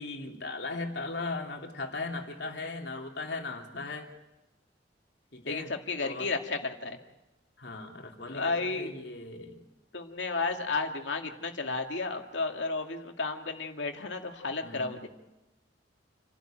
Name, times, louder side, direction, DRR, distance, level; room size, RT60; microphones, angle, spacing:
voice 1, 0.0-4.1 5.3-5.7 6.0-6.3 7.6-9.6 14.6-14.9, left 3 dB, 65° left, 2 dB, 3.0 m, -38 dB
voice 2, 5.4-7.0 8.3-8.9 9.9-15.1, left 3 dB, 85° left, 4 dB, 2.2 m, -33 dB
28.5 x 12.5 x 9.0 m, 0.99 s
head